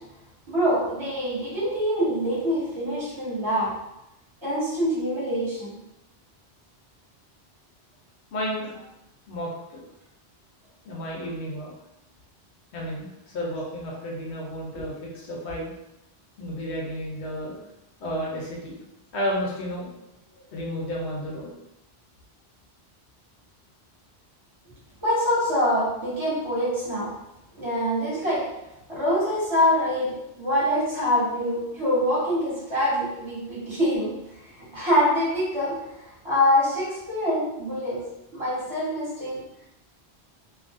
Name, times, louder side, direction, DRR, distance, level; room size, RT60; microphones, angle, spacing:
voice 1, 0.5-3.7 4.4-5.7 25.0-27.1 27.6-28.4 28.9-34.1 34.7-35.7 36.2-38.0 38.3-39.4, equal, 25° right, -9 dB, 1.3 m, -24 dB
voice 2, 8.3-8.8 9.3-9.8 10.8-11.7 12.7-13.1 13.3-15.7 16.4-17.6 18.0-18.8 19.1-19.9 20.5-21.5, equal, 80° left, -3 dB, 1.0 m, -32 dB
2.6 x 2.3 x 2.5 m, 0.89 s
omnidirectional pair, 1.1 m